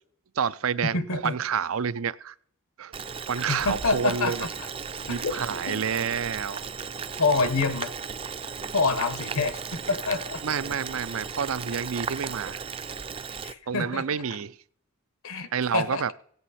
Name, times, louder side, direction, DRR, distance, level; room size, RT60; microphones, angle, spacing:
voice 1, 0.4-2.3 2.8-2.9 3.3-4.5 5.1-6.6 10.4-12.6 13.7-14.6 15.5-16.1, right 7 dB, 80° right, 0.5 m, -29 dB
voice 2, 0.9-1.3 3.4-4.5 5.1-5.8 7.2-7.9 8.7-9.6 9.9-10.4 13.4-14.0 15.2-16.1, left 3 dB, 75° left, 1.0 m, -27 dB
Boiling, 2.9-13.5, right 6 dB, 25° right, 0.4 m, -36 dB
17.0 x 8.1 x 4.2 m
head